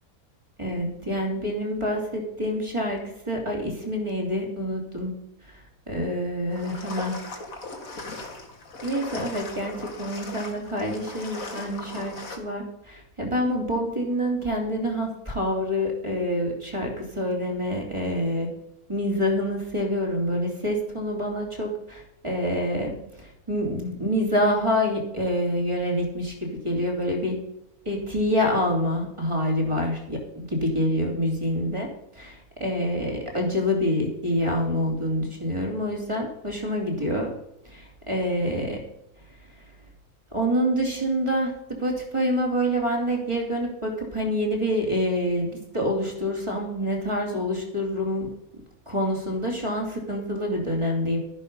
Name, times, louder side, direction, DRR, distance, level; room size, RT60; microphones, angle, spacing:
voice 1, 0.6-5.1 5.5-7.1 8.8-18.5 18.9-27.4 27.8-31.9 32.1-37.3 37.6-38.8 40.3-48.3 48.9-51.2, equal, 20° right, 0 dB, 3.1 m, -27 dB
sound 1, 6.5-12.4, left 3 dB, 65° left, 2.4 m, -38 dB
12.5 x 11.0 x 5.4 m, 0.81 s
omnidirectional pair, 1.5 m